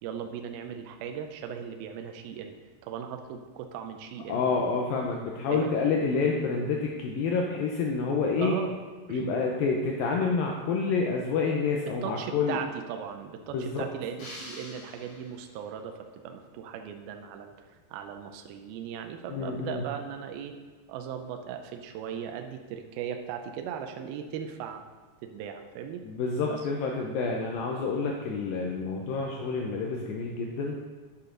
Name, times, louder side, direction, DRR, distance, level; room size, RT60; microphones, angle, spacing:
voice 1, 0.0-2.5 2.8-4.4 5.5-5.8 8.4-8.7 9.1-9.3 12.0-16.0 16.2-17.5 17.9-20.5 20.9-24.8 25.2-26.0 26.5-26.6, right 8 dB, 85° right, 5 dB, 2.2 m, -38 dB
voice 2, 4.3-8.6 9.1-12.6 13.5-13.9 19.3-19.8 26.0-30.8, left 4 dB, 85° left, 0 dB, 2.1 m, -28 dB
sound 1, 14.2-15.7, left 1 dB, 45° left, 2.8 m, -46 dB
8.2 x 8.1 x 3.9 m, 1.4 s
omnidirectional pair, 4.9 m